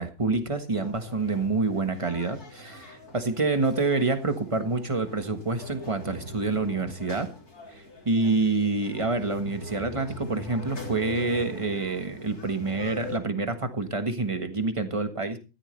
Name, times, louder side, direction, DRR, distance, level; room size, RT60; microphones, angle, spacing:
voice 1, 0.0-7.3 7.7-15.4, right 3 dB, 20° right, 8 dB, 1.4 m, -27 dB
sound 1, 0.7-13.2, left 1 dB, 90° left, 3.9 m, -42 dB
14.5 x 12.5 x 3.2 m, 0.32 s
omnidirectional pair, 1.5 m